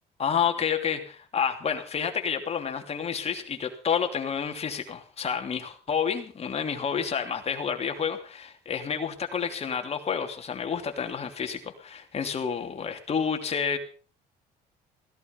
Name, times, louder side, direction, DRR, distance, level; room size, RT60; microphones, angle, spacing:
voice 1, 0.2-13.8, left 7 dB, 40° left, 5 dB, 3.1 m, -29 dB
17.0 x 14.5 x 5.5 m, 0.40 s
cardioid pair, 110°, 17 cm